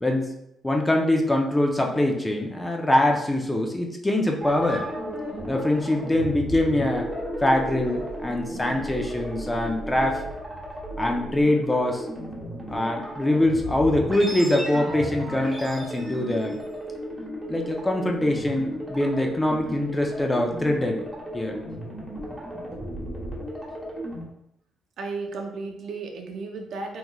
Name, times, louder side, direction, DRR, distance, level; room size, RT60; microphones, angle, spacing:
voice 1, 0.0-0.3 0.6-4.9 5.5-7.1 7.4-10.2 11.0-12.0 12.7-16.6 17.5-21.1 21.3-21.6, left 1 dB, 15° left, 1 dB, 0.5 m, -23 dB
sound 1, 4.4-24.2, equal, 20° right, 1.2 m, -34 dB
voice 2, 25.0-27.0, right 3 dB, 65° right, 3 dB, 0.6 m, -34 dB
3.6 x 3.0 x 2.3 m, 0.80 s
cardioid pair, 90°, 0 cm